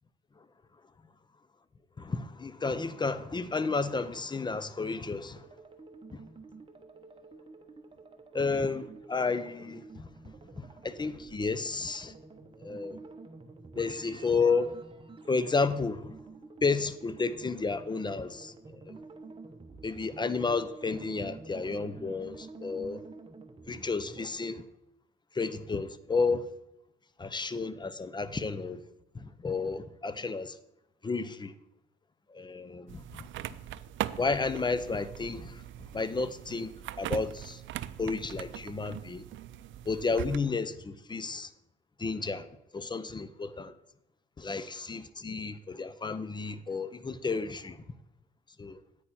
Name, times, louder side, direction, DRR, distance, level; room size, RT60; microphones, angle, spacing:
voice 1, 2.0-5.5 6.1-6.2 8.3-10.1 10.6-12.1 12.6-13.0 13.8-14.8 15.3-16.2 16.6-19.0 19.8-23.0 23.7-24.7 25.3-26.5 27.2-28.8 29.1-30.6 31.0-31.5 32.3-33.2 34.2-35.6 35.9-36.7 37.0-37.6 38.0-39.3 39.9-41.5 42.0-42.5 42.7-43.7 44.4-47.8 48.6-48.8, left 4 dB, 20° left, 0.6 m, -32 dB
sound 1, 5.3-24.3, right 3 dB, 25° right, 1.1 m, -49 dB
sound 2, 32.9-40.4, right 13 dB, 75° right, 0.4 m, -40 dB
9.3 x 8.8 x 4.3 m
cardioid pair, 90°, 20 cm